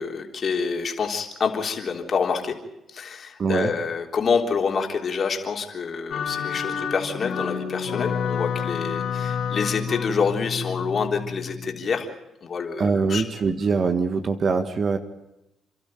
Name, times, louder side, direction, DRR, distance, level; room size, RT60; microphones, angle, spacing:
voice 1, 0.0-2.6 2.9-12.1 12.4-13.2, left 5 dB, 50° left, 3 dB, 3.6 m, -27 dB
voice 2, 3.4-3.7 12.8-15.0, right 4 dB, 45° right, 8 dB, 1.6 m, -23 dB
sound 1, 6.1-11.8, left 7 dB, 65° left, 3.9 m, -29 dB
29.5 x 12.5 x 9.0 m, 0.94 s
cardioid pair, 90°, 0 cm